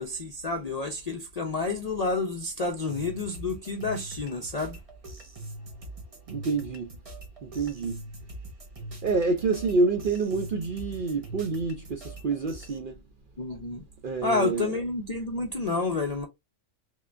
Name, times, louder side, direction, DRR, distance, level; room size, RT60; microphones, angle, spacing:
voice 1, 0.0-4.8 13.4-13.8 14.2-16.3, left 3 dB, 50° left, 0.4 m, -29 dB
sound 1, 2.9-12.8, right 1 dB, 30° right, 1.0 m, -43 dB
voice 2, 6.3-6.9 7.4-8.0 9.0-13.0 14.0-14.8, right 3 dB, 60° right, 0.5 m, -28 dB
3.6 x 3.4 x 2.4 m
omnidirectional pair, 1.4 m